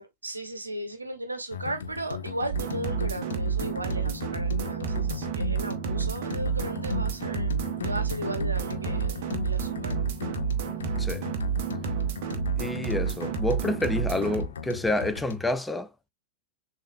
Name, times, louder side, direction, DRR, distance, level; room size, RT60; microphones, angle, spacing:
voice 1, 0.0-7.5 7.8-10.0, right 1 dB, 80° right, 0.9 m, -36 dB
sound 1, 1.5-15.5, left 7 dB, 65° left, 0.5 m, -37 dB
sound 2, 2.5-14.4, right 7 dB, 50° right, 0.7 m, -30 dB
voice 2, 12.6-15.9, left 1 dB, 5° left, 0.4 m, -28 dB
6.4 x 2.6 x 2.3 m
figure-of-eight pair, 90°, 0 cm